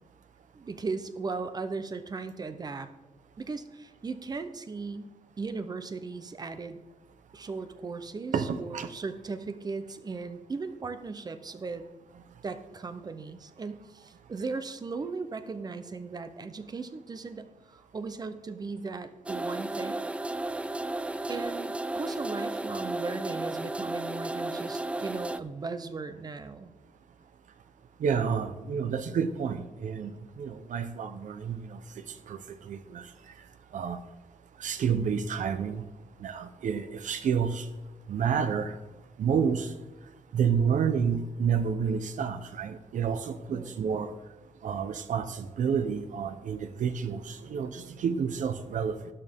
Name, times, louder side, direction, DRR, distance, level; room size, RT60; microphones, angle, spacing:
voice 1, 0.5-2.9 3.4-5.1 5.4-6.8 7.3-11.8 12.4-20.0 21.3-26.7 43.5-43.9, right 4 dB, 30° right, 10 dB, 0.7 m, -37 dB
voice 2, 8.3-8.9 28.0-33.1 33.7-34.0 34.6-35.8 36.2-37.7 38.1-38.8 39.2-39.7 40.3-44.1 44.6-49.0, right 7 dB, 75° right, 10 dB, 0.9 m, -29 dB
sound 1, 19.3-25.4, right 2 dB, 10° right, 0.3 m, -33 dB
12.0 x 11.0 x 3.6 m, 1.2 s
wide cardioid pair, 160°, 13 cm